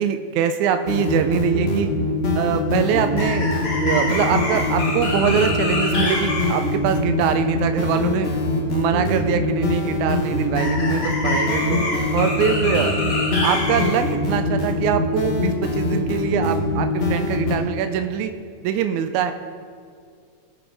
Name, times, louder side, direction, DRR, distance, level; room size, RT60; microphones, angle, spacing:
voice 1, 0.0-1.9 2.3-3.5 3.8-8.3 8.7-11.8 12.1-13.0 13.4-18.3 18.6-19.3, right 9 dB, 85° right, 8 dB, 2.0 m, -23 dB
sound 1, 0.9-17.6, left 2 dB, 55° left, 0.6 m, -22 dB
19.5 x 9.0 x 3.5 m, 2.2 s
omnidirectional pair, 3.3 m